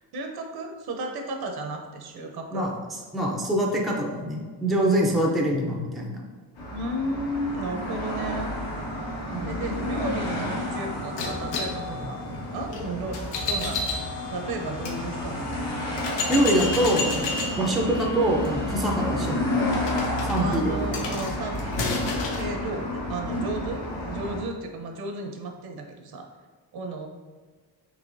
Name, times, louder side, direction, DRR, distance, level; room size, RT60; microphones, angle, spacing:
voice 1, 0.1-2.7 6.7-8.5 9.4-15.8 17.5-17.7 20.4-26.3 26.7-27.1, right 2 dB, 60° right, 3 dB, 0.7 m, -34 dB
voice 2, 2.5-6.2 9.3-9.6 16.3-19.5 20.2-21.0, right 1 dB, ahead, 0 dB, 0.5 m, -25 dB
sound 1, 6.6-24.4, left 1 dB, 65° left, 1.3 m, -31 dB
sound 2, 10.3-20.1, equal, 50° left, 1.1 m, -45 dB
sound 3, 11.2-15.0 15.5-15.6 16.0-22.5, left 3 dB, 85° left, 0.8 m, -32 dB
4.9 x 3.0 x 2.6 m, 1.4 s
cardioid pair, 110°, 42 cm